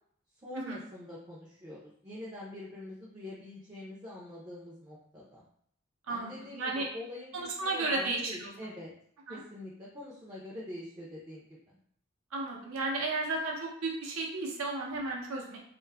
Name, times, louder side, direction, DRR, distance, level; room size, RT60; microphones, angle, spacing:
voice 1, 0.4-5.5 6.1-8.9 9.3-11.6, left 1 dB, 20° right, -5 dB, 0.4 m, -45 dB
voice 2, 6.1-6.9 7.3-8.5 9.3-9.4 12.3-15.6, right 2 dB, 80° right, -1 dB, 0.6 m, -33 dB
2.3 x 2.0 x 3.3 m, 0.65 s
head